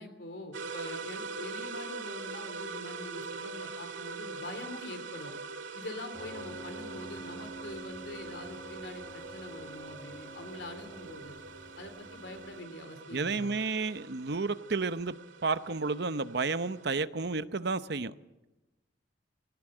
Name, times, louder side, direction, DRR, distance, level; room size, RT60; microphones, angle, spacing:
voice 1, 0.0-5.3 5.7-11.3 11.8-13.5, left 1 dB, 65° left, 3.2 m, -44 dB
sound 1, 0.5-16.9, right 4 dB, 85° right, 2.2 m, -43 dB
Piano, 6.1-12.6, right 1 dB, 30° left, 3.5 m, -48 dB
voice 2, 13.1-15.2 15.4-18.1, right 4 dB, 60° right, 0.8 m, -31 dB
21.0 x 18.0 x 7.8 m
head